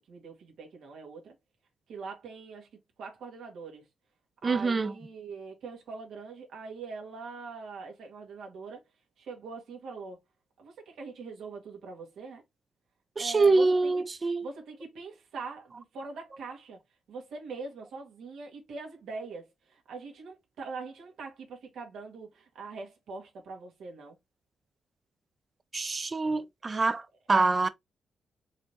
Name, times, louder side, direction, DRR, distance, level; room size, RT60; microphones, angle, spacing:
voice 1, 0.1-1.3 1.9-2.7 3.0-3.9 4.4-8.8 9.2-10.2 10.6-12.4 13.2-14.0 14.4-16.8 17.1-24.2 26.2-26.3, right 4 dB, 80° right, 2.0 m, -42 dB
voice 2, 4.4-4.9 13.2-14.5 25.7-27.7, right 3 dB, 30° right, 0.6 m, -25 dB
4.6 x 3.7 x 2.9 m
cardioid pair, 85°, 0 cm